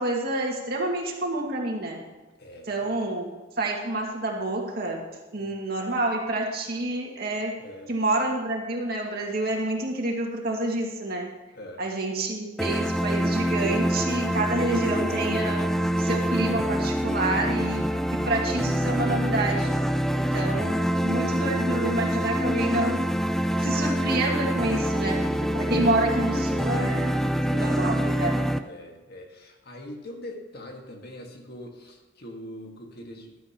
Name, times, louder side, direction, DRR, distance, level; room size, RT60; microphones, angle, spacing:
voice 1, 0.0-2.0 2.7-3.3 3.6-5.0 5.3-7.5 7.9-11.3 11.8-15.6 16.0-17.8 18.1-19.8 20.3-20.7 21.0-23.0 23.6-27.1 27.5-28.5, right 2 dB, 50° right, 0 dB, 2.1 m, -28 dB
voice 2, 2.4-3.0 5.3-5.6 7.6-7.9 11.5-11.8 20.0-21.2 24.6-25.0 27.5-27.9 28.6-33.4, left 1 dB, 50° left, 2 dB, 1.7 m, -43 dB
sound 1, 12.6-28.6, equal, ahead, 0.4 m, -25 dB
14.0 x 12.0 x 3.0 m, 1.2 s
head